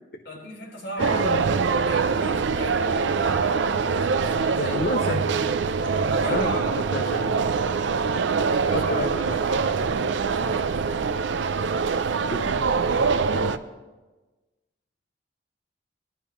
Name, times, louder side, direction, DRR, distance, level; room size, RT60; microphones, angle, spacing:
voice 1, 0.2-4.9 6.1-7.2 8.6-9.1 9.4-10.1 10.4-11.0 12.4-13.6, equal, 70° left, -3 dB, 3.8 m, -38 dB
voice 2, 1.0-1.4 4.6-5.3 6.3-7.3 8.7-9.4 11.9-12.5 12.9-13.1, left 2 dB, 55° left, 5 dB, 0.6 m, -31 dB
sound 1, 1.0-13.6, right 5 dB, 80° right, 0.5 m, -24 dB
19.0 x 12.0 x 3.1 m, 1.2 s
head